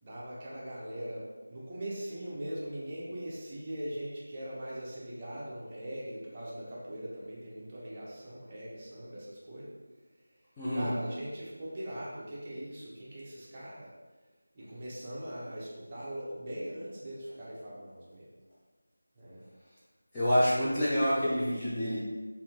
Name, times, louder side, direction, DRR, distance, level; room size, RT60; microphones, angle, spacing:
voice 1, 0.0-9.7 10.7-13.9 14.5-18.3 19.2-19.4, right 1 dB, 20° right, -8 dB, 0.8 m, -41 dB
voice 2, 10.6-10.9 20.1-22.0, equal, 10° left, -11 dB, 0.4 m, -27 dB
3.4 x 2.5 x 2.8 m, 1.3 s
figure-of-eight pair, 170°, 0 cm